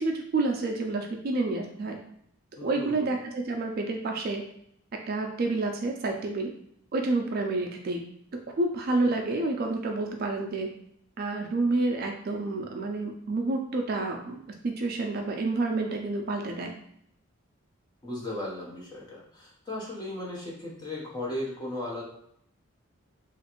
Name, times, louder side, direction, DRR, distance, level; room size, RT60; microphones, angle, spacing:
voice 1, 0.0-2.0 2.6-4.4 5.1-6.5 6.9-8.0 8.6-10.7 11.2-14.4 14.8-16.7, right 2 dB, 45° right, 3 dB, 0.3 m, -29 dB
voice 2, 2.6-3.2 18.0-22.0, left 1 dB, 20° left, -4 dB, 0.7 m, -36 dB
3.0 x 2.4 x 2.9 m, 0.72 s
head